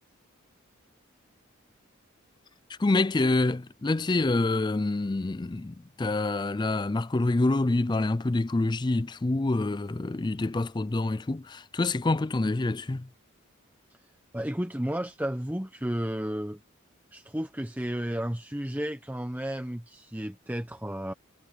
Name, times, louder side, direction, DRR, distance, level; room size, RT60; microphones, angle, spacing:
voice 1, 2.7-13.1, left 2 dB, 20° left, 0.4 m, -27 dB
voice 2, 14.3-16.6 17.1-21.1, equal, 10° right, 0.9 m, -32 dB
head